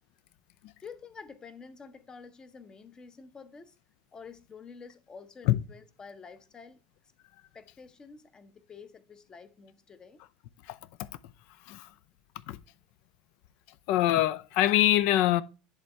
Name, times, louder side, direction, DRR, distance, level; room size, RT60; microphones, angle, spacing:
voice 1, 0.8-3.7 4.1-6.8 7.5-10.2, left 5 dB, 25° left, 0.8 m, -49 dB
voice 2, 13.9-15.4, left 14 dB, 60° left, 0.4 m, -24 dB
10.5 x 3.5 x 3.2 m
hypercardioid pair, 80°, 3 cm